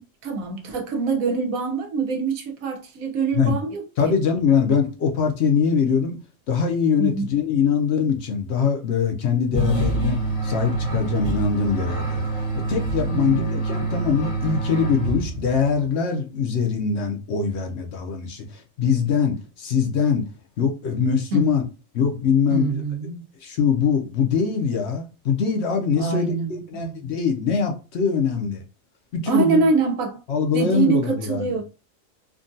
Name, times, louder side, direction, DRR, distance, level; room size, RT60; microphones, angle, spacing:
voice 1, 0.2-4.2 7.0-7.3 13.1-13.6 21.3-21.5 22.5-23.3 26.0-26.9 29.3-30.2 30.5-31.6, right 4 dB, 85° right, 1.2 m, -24 dB
voice 2, 4.0-6.2 6.5-10.2 10.4-12.2 12.7-20.2 20.6-21.6 21.9-22.8 23.4-28.6 29.1-29.7 30.3-31.6, left 6 dB, 60° left, 0.8 m, -22 dB
sound 1, 9.5-15.6, right 3 dB, 30° left, 0.8 m, -26 dB
3.6 x 2.3 x 2.6 m
omnidirectional pair, 1.4 m